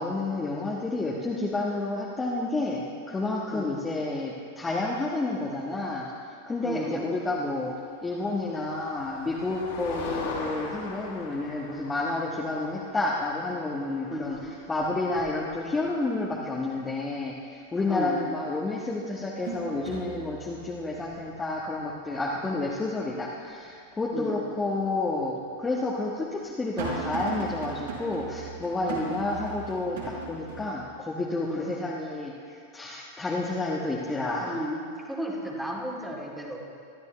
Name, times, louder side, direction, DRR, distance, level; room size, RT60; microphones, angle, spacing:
voice 1, 0.0-6.1 6.5-7.7 8.0-14.4 14.7-34.5, left 2 dB, 15° left, -4 dB, 1.4 m, -30 dB
voice 2, 6.6-7.0 8.5-8.6 14.1-14.3 17.9-18.2 24.1-24.4 28.8-29.1 31.4-31.7 34.4-34.8 35.0-36.6, equal, ahead, -2 dB, 2.4 m, -34 dB
Motor vehicle (road), 8.0-15.8, left 3 dB, 55° left, 3.4 m, -41 dB
sound 1, 12.0-12.5 12.9-13.7 14.0-16.2 16.6-16.7 18.2-18.3 18.8-23.9 24.3-24.4 25.3-30.7, right 4 dB, 60° right, 4.6 m, -40 dB
24.0 x 13.0 x 3.3 m, 2.4 s
figure-of-eight pair, 90°, 0 cm